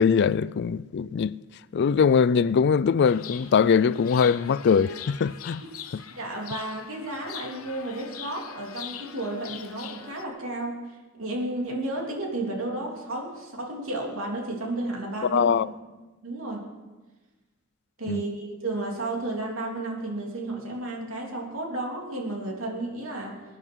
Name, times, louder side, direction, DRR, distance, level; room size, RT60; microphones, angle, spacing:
voice 1, 0.0-1.4 1.7-5.6 5.9-6.0 15.2-15.7 18.1-18.2, left 6 dB, 55° left, 0.4 m, -22 dB
Chirp tweet, 3.1-10.3, left 9 dB, 85° left, 1.0 m, -42 dB
voice 2, 6.2-10.8 11.2-15.6 16.2-16.7 18.0-23.4, right 2 dB, 75° right, 3.1 m, -32 dB
23.0 x 10.0 x 4.7 m
head